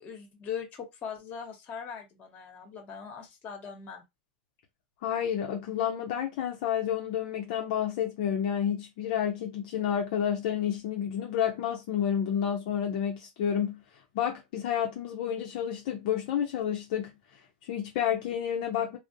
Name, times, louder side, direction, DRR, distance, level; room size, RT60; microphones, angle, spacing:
voice 1, 0.0-4.0, left 7 dB, 35° left, 1.1 m, -40 dB
voice 2, 5.0-13.8 14.1-17.1 17.6-19.0, left 9 dB, 65° left, 0.6 m, -30 dB
2.4 x 2.1 x 2.7 m
supercardioid pair, 120°, 5 cm